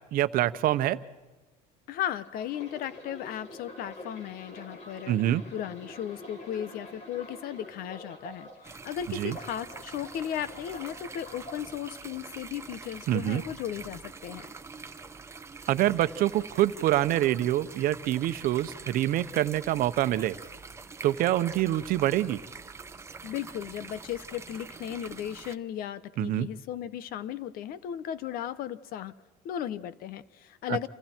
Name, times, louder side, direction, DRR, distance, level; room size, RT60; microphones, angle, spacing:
voice 1, 0.1-1.0 5.1-5.4 9.1-9.4 13.1-13.4 15.7-20.4 21.0-22.4 26.2-26.5 30.7-30.8, right 13 dB, 65° right, 13 dB, 0.9 m, -26 dB
voice 2, 1.9-5.2 5.5-14.5 23.2-29.1 29.4-30.9, left 10 dB, 65° left, 16 dB, 1.1 m, -36 dB
sound 1, 2.2-8.7 9.1-11.6 12.2-12.5, left 1 dB, 45° left, 6.5 m, -46 dB
sound 2, 8.6-25.6, right 4 dB, 15° right, 1.0 m, -45 dB
28.5 x 28.5 x 4.5 m, 1.3 s
cardioid pair, 120°, 16 cm